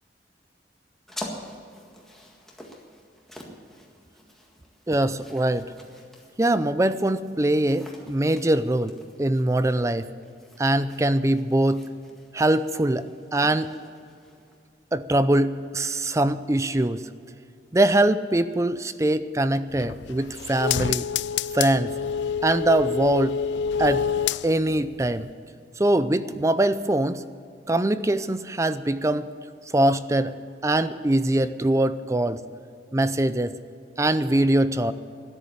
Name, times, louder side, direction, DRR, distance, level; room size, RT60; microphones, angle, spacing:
sound 1, 1.1-14.6, left 1 dB, ahead, 1.8 m, -46 dB
voice 1, 4.9-5.7 6.4-10.1 10.6-11.9 12.3-13.7 14.9-17.1 17.7-21.1 21.5-21.9 22.4-23.4 23.8-24.1 24.4-25.3 25.8-27.2 27.7-29.2 29.7-30.3 30.6-32.4 32.9-33.5 34.0-34.9, right 1 dB, 15° right, 13 dB, 0.5 m, -22 dB
sound 2, 19.7-24.8 25.2-25.3, left 7 dB, 80° left, 0.4 m, -27 dB
13.0 x 10.5 x 8.4 m, 2.4 s
head